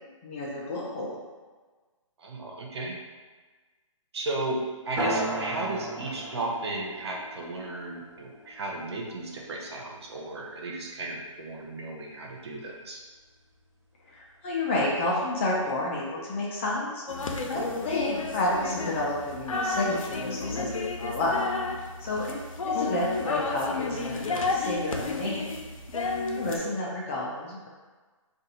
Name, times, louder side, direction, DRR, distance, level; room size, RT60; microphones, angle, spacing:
voice 1, 0.2-1.2 14.1-17.0 17.5-20.7 21.0-21.4 22.0-25.6 26.4-27.7, left 2 dB, 20° left, -4 dB, 0.5 m, -30 dB
voice 2, 2.2-2.9 4.1-13.0 26.4-26.7, right 2 dB, 55° right, -1 dB, 0.7 m, -35 dB
sound 1, 5.0-10.0, right 1 dB, 25° right, 1.0 m, -35 dB
sound 2, 17.1-26.6, left 3 dB, 80° left, 0.5 m, -32 dB
2.5 x 2.5 x 4.1 m, 1.3 s
hypercardioid pair, 155°, 17 cm